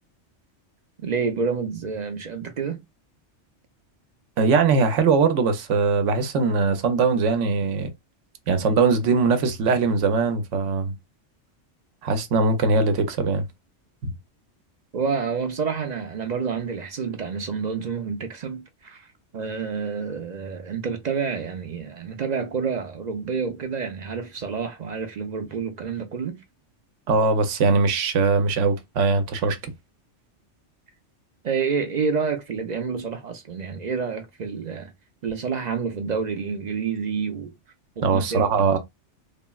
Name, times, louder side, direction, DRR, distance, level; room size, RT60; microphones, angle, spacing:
voice 1, 1.0-2.8 14.9-26.4 31.4-34.9 35.2-37.5 38.0-38.5, right 5 dB, 55° right, 0.5 m, -28 dB
voice 2, 4.4-7.9 8.5-10.9 12.0-13.5 14.0-14.1 27.1-29.6 38.0-38.8, right 4 dB, 80° right, 1.0 m, -21 dB
3.4 x 2.1 x 2.2 m
omnidirectional pair, 1.2 m